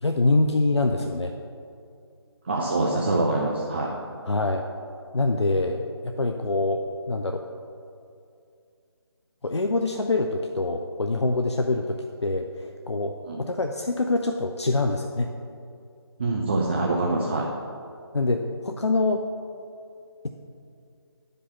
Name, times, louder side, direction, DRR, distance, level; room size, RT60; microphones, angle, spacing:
voice 1, 0.0-1.3 4.3-4.7 5.1-7.4 9.4-15.3 18.1-19.2 20.2-20.3, left 2 dB, 85° left, 4 dB, 0.5 m, -25 dB
voice 2, 2.4-3.9 13.3-13.4 16.2-17.5, right 2 dB, 25° right, -2 dB, 0.5 m, -25 dB
9.8 x 5.2 x 4.3 m, 2.4 s
figure-of-eight pair, 155°, 14 cm